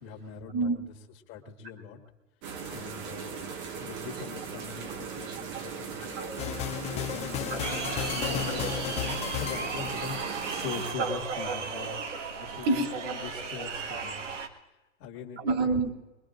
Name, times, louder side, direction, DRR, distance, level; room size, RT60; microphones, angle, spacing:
voice 1, 0.0-0.9 1.3-2.0 2.7-6.0 6.9-11.9 12.4-14.2 15.0-15.8, left 6 dB, 40° left, -1 dB, 2.2 m, -42 dB
sound 1, 2.4-10.9, right 6 dB, 30° right, 1.2 m, -39 dB
voice 2, 2.5-3.0 4.2-4.3 5.3-5.6 6.0-6.5 7.5-7.7 8.5-8.7 9.2-9.3 11.0-12.2 12.6-14.4 15.4-15.9, right 3 dB, 50° right, 3 dB, 3.1 m, -32 dB
sound 2, 6.4-10.6, left 10 dB, 15° left, 0.6 m, -34 dB
sound 3, 7.6-14.5, right 4 dB, 70° right, 1.8 m, -36 dB
23.0 x 22.0 x 2.6 m, 1.1 s
hypercardioid pair, 125°, 37 cm